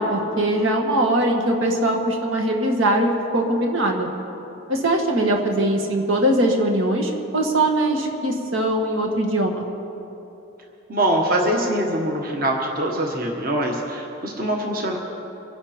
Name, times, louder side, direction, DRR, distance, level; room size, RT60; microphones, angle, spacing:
voice 1, 0.0-4.1 4.7-9.6, right 1 dB, 80° right, 2 dB, 1.8 m, -21 dB
voice 2, 10.9-15.0, right 1 dB, 45° right, 1 dB, 1.4 m, -23 dB
25.0 x 11.0 x 4.4 m, 2.9 s
head